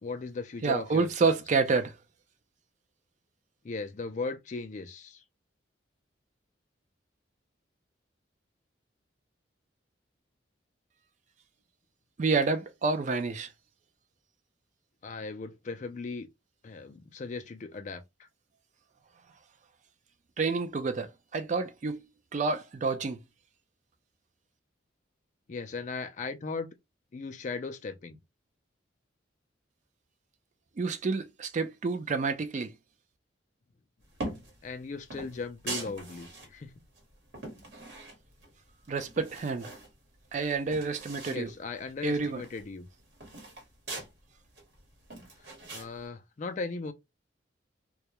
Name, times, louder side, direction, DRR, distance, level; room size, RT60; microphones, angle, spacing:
voice 1, 0.0-1.1 3.6-5.2 15.0-16.3 16.6-18.3 25.5-26.7 27.1-28.2 34.6-36.7 41.3-42.9 45.7-46.9, left 4 dB, 40° left, 0.3 m, -37 dB
voice 2, 0.6-1.9 12.2-13.5 20.4-22.0 22.3-23.2 30.8-32.7 38.9-39.7 40.3-41.5 42.0-42.4, right 4 dB, 40° right, 0.3 m, -29 dB
sound 1, 34.1-34.6 35.1-36.5 37.0-38.5 38.8-39.9 40.2-40.3 40.5-41.4 41.8-41.9 42.2-44.1 44.6-45.9, right 2 dB, 65° right, 1.1 m, -41 dB
2.3 x 2.1 x 2.8 m
head